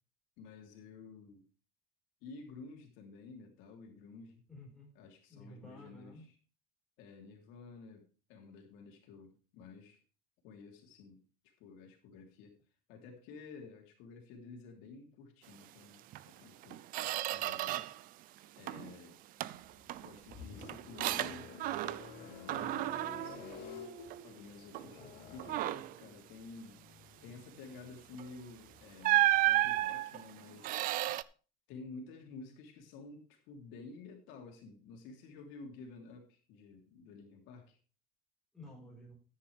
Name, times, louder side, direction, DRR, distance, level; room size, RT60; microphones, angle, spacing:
voice 1, 0.4-1.4 2.2-4.4 4.9-6.3 7.0-10.0 10.4-11.2 11.6-12.6 12.9-16.8 17.3-17.8 18.6-19.2 20.0-21.5 22.1-23.9 24.2-25.0 25.3-26.8 27.2-30.8 31.7-37.8, left 4 dB, 65° left, 2 dB, 3.2 m, -52 dB
voice 2, 4.5-4.9 5.3-6.3 22.5-22.8 24.8-25.1 38.5-39.2, left 1 dB, ahead, -3 dB, 4.6 m, -53 dB
Squeak, 16.1-16.3 16.6-18.1 18.4-19.0 19.4-22.2 22.5-24.3 24.7-25.0 25.4-26.0 28.1-28.3 29.0-31.2, right 16 dB, 45° right, 0.5 m, -33 dB
sound 1, 19.5-29.8, left 6 dB, 45° left, 3.9 m, -52 dB
13.0 x 9.8 x 3.4 m, 0.35 s
cardioid pair, 170°, 21 cm